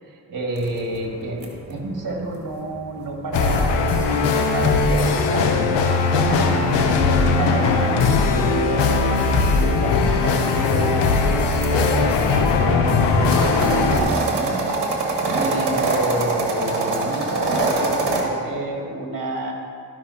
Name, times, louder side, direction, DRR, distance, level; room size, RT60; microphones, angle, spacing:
voice 1, 0.3-6.0 6.3-19.5, right 1 dB, 50° right, 0 dB, 2.0 m, -29 dB
sound 1, 0.6-6.5 7.7-11.9 12.4-18.2, right 3 dB, 80° right, 1.5 m, -26 dB
sound 2, 3.3-14.0, left 4 dB, 85° left, 0.8 m, -19 dB
13.5 x 5.6 x 2.8 m, 2.3 s
supercardioid pair, 50°, 41 cm